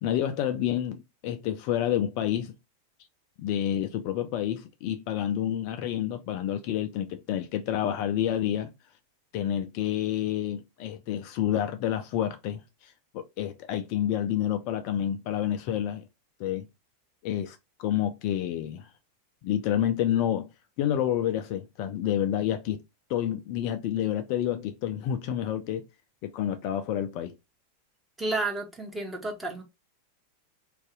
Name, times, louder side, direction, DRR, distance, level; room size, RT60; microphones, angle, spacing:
voice 1, 0.0-2.5 3.4-8.7 9.3-16.0 16.4-16.7 17.2-18.9 19.4-20.5 20.8-22.8 23.1-25.9 26.2-27.3, left 10 dB, 45° left, 0.4 m, -29 dB
voice 2, 28.2-29.6, right 2 dB, 10° right, 0.9 m, -31 dB
2.6 x 2.3 x 3.6 m
figure-of-eight pair, 90°, 0 cm